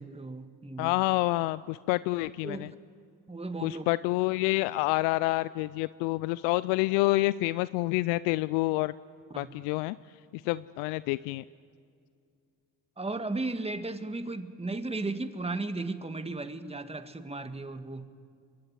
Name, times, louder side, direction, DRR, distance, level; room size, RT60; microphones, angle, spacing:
voice 1, 0.0-1.0 2.4-2.8 3.3-3.8 9.3-9.5 13.0-18.1, right 2 dB, 15° right, 9 dB, 1.9 m, -35 dB
voice 2, 0.8-2.7 3.6-8.9 9.4-10.0 10.3-11.4, left 20 dB, 80° left, 18 dB, 0.6 m, -28 dB
29.5 x 23.0 x 7.6 m, 2.3 s
hypercardioid pair, 50°, 42 cm